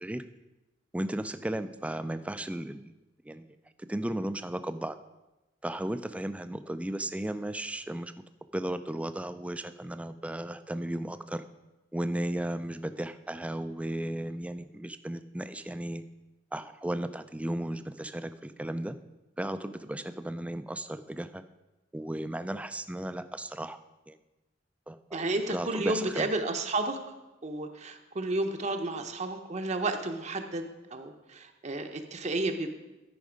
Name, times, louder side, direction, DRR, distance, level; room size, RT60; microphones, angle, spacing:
voice 1, 0.9-2.9 3.2-3.5 3.9-5.0 5.6-8.1 8.5-11.4 11.9-16.0 16.5-19.0 19.4-21.4 21.9-23.8 24.1-24.2 24.9-26.3, right 1 dB, 5° right, 11 dB, 0.3 m, -35 dB
voice 2, 25.1-27.0 27.4-32.7, right 2 dB, 35° right, 5 dB, 0.7 m, -32 dB
13.0 x 5.2 x 5.1 m, 1.0 s
head